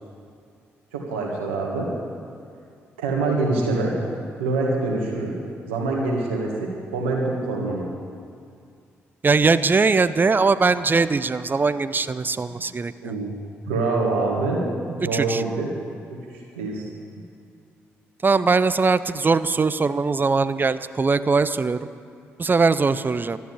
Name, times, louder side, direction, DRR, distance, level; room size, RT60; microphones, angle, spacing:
voice 1, 0.9-1.9 3.0-4.0 4.4-5.3 5.7-7.9 13.0-13.3 13.7-15.7 16.1-16.2 16.6-16.8, right 3 dB, 90° right, -1 dB, 1.9 m, -25 dB
voice 2, 9.2-13.1 15.1-15.4 18.2-21.8 22.4-23.4, right 4 dB, 30° right, 14 dB, 0.6 m, -21 dB
12.5 x 9.2 x 8.3 m, 2.3 s
hypercardioid pair, 40°, 6 cm